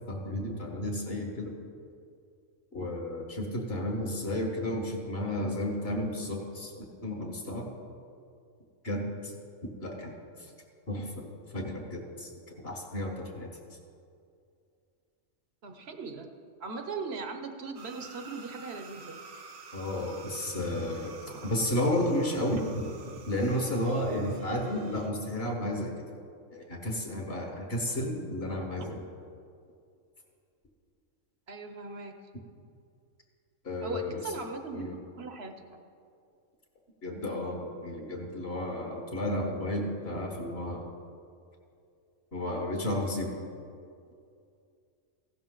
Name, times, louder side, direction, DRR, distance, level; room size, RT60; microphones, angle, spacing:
voice 1, 0.1-1.5 2.7-6.7 7.0-7.7 8.8-9.3 9.8-10.1 10.4-10.5 10.9-11.3 11.5-12.3 12.6-13.5 19.7-21.1 21.4-22.9 23.3-25.9 26.5-29.0 33.6-34.2 34.7-35.0 37.0-40.9 42.3-43.4, left 1 dB, 45° left, 1 dB, 1.8 m, -32 dB
voice 2, 15.6-16.3 16.6-19.2 21.3-21.5 22.5-22.6 28.8-28.9 31.5-32.2 33.8-35.8, right 4 dB, 55° right, 6 dB, 1.0 m, -39 dB
sound 1, 17.8-25.1, right 5 dB, 70° right, 1.3 m, -49 dB
15.5 x 11.5 x 3.9 m, 2.4 s
omnidirectional pair, 1.5 m